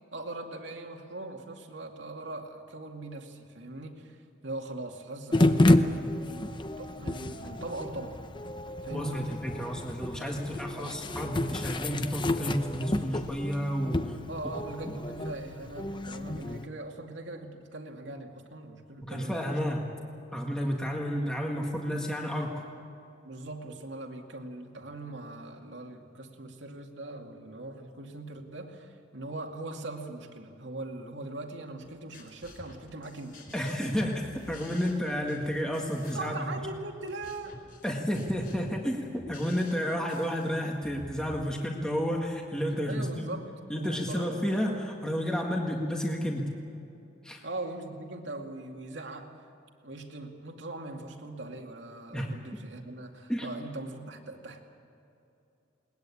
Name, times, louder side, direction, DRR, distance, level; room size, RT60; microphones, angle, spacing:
voice 1, 0.1-4.2 4.4-8.2 8.8-9.2 10.7-11.0 14.3-19.5 23.2-33.5 36.1-37.6 42.9-43.5 43.7-44.5 47.4-49.4 49.8-54.6, right 2 dB, 75° right, 2 dB, 2.3 m, -41 dB
sound 1, 5.3-16.7, left 1 dB, 25° left, 0.7 m, -29 dB
voice 2, 8.9-14.2 19.0-19.9 20.3-22.6 33.5-36.5 37.8-43.3 43.7-46.4 47.2-47.4 52.1-52.3 53.3-53.5, equal, 5° left, 0 dB, 1.8 m, -31 dB
sound 2, 31.8-41.4, left 2 dB, 50° left, 4.1 m, -50 dB
21.0 x 20.0 x 8.6 m, 2.7 s
head